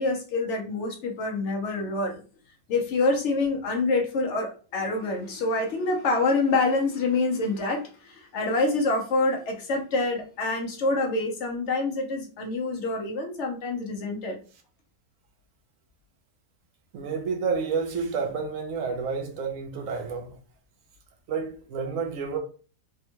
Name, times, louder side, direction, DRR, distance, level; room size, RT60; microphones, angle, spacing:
voice 1, 0.0-2.2 2.7-14.4, left 3 dB, 65° left, 0.7 m, -26 dB
voice 2, 16.9-20.4 21.3-22.4, right 5 dB, 65° right, 0.8 m, -30 dB
3.4 x 2.1 x 2.8 m
omnidirectional pair, 1.8 m